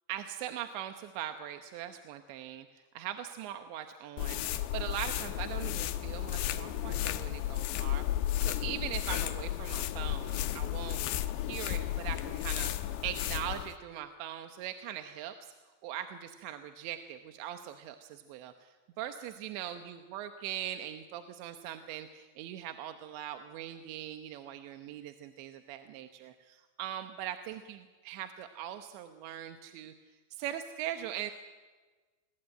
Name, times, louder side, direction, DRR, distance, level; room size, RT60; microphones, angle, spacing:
voice 1, 0.1-2.7 2.9-4.4 4.7-8.0 8.4-11.0 11.4-12.7 13.0-15.5 15.8-18.7 19.0-29.9 30.3-31.3, right 11 dB, 75° right, 7 dB, 3.2 m, -41 dB
sound 1, 4.2-13.7, left 13 dB, 75° left, 2.8 m, -33 dB
29.0 x 22.0 x 9.0 m, 1.4 s
omnidirectional pair, 5.4 m